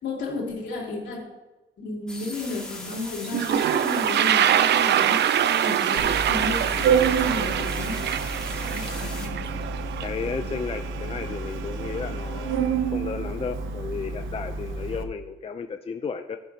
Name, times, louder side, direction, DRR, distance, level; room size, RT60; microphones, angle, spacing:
voice 1, 0.0-1.3 1.8-8.1 8.7-9.3, left 3 dB, 65° left, -2 dB, 3.2 m, -33 dB
sound 1, 2.1-9.3, left 1 dB, 5° left, 2.4 m, -39 dB
Toilet flush, 2.9-3.0 3.2-10.1, right 10 dB, 60° right, 0.5 m, -24 dB
Organ, 6.0-15.0, right 5 dB, 85° right, 0.9 m, -29 dB
voice 2, 10.0-16.4, left 5 dB, 30° left, 7 dB, 0.6 m, -33 dB
15.0 x 10.0 x 2.9 m, 1.1 s
cardioid pair, 90°, 20 cm